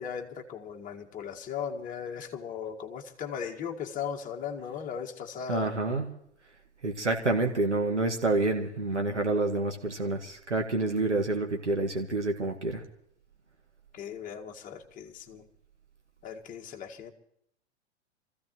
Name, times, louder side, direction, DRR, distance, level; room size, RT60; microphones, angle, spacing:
voice 1, 0.0-5.8 13.9-15.5 16.2-17.1, left 7 dB, 25° left, 1 dB, 1.8 m, -37 dB
voice 2, 5.5-6.1 6.8-12.8, right 2 dB, 90° right, 3 dB, 1.8 m, -28 dB
26.5 x 15.0 x 3.1 m, 0.73 s
figure-of-eight pair, 100°, 35 cm